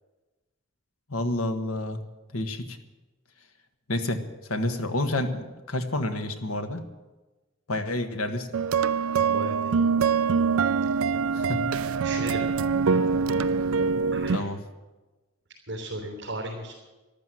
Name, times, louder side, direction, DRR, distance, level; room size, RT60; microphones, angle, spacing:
voice 1, 1.1-2.0 2.3-2.8 3.9-4.2 4.5-6.8 7.7-8.5 11.3-11.7 14.3-14.6, left 1 dB, 85° left, 6 dB, 1.6 m, -29 dB
sound 1, 8.5-14.4, right 5 dB, 90° right, 0.5 m, -24 dB
voice 2, 9.2-9.7 12.0-12.4 14.1-14.5 15.7-16.8, right 1 dB, 55° right, -3 dB, 3.5 m, -35 dB
13.5 x 12.5 x 7.8 m, 1.2 s
head